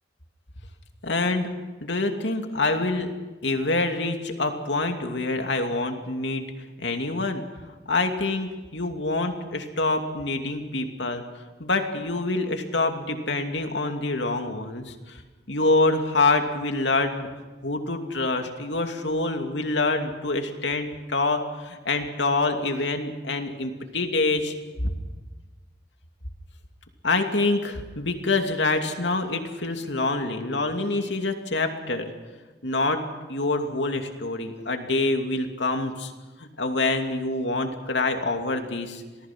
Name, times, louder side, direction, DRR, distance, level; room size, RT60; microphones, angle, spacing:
voice 1, 1.0-1.5 1.8-3.1 3.4-6.5 6.8-7.4 7.9-11.2 11.6-15.2 15.5-17.3 17.6-24.5 27.0-32.1 32.6-33.0 33.3-36.1 36.4-39.0, left 2 dB, 75° left, 5 dB, 2.7 m, -26 dB
27.5 x 19.0 x 6.1 m, 1.3 s
head